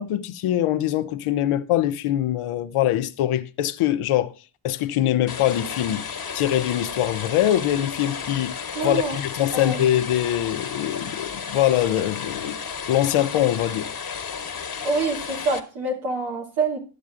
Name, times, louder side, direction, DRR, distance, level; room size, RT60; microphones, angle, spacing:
voice 1, 0.0-4.3 4.6-6.1 6.3-8.6 8.8-12.6 12.9-13.9, left 12 dB, 85° left, 0.7 m, -23 dB
sound 1, 5.3-15.6, left 6 dB, 45° left, 1.2 m, -33 dB
voice 2, 8.7-9.2 9.5-9.8 14.8-16.8, right 3 dB, 90° right, 2.4 m, -26 dB
11.5 x 7.2 x 2.4 m
supercardioid pair, 45°, 49 cm